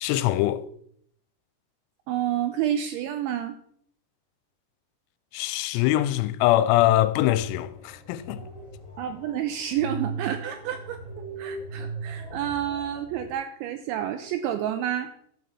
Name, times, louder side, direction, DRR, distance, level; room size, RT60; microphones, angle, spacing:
voice 1, 0.0-0.7 5.3-8.4, left 14 dB, 90° left, 3.3 m, -23 dB
voice 2, 2.1-3.6 9.0-11.0 11.4-15.1, right 10 dB, 85° right, 2.7 m, -29 dB
sound 1, 6.6-13.3, right 3 dB, 30° left, 3.7 m, -39 dB
12.5 x 5.6 x 7.1 m
omnidirectional pair, 6.0 m